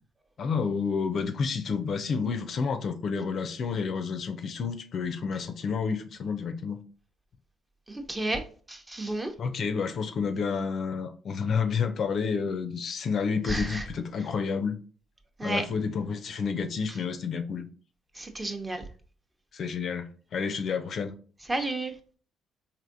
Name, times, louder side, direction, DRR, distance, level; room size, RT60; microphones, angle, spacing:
voice 1, 0.4-6.8 9.4-14.8 15.4-17.7 19.5-21.2, left 5 dB, 55° left, 0.4 m, -30 dB
voice 2, 7.9-9.3 13.4-13.9 15.4-15.6 16.9-17.0 18.1-18.8 21.5-22.0, right 2 dB, 20° right, 0.7 m, -32 dB
3.4 x 2.6 x 2.6 m
hypercardioid pair, 55°, 0 cm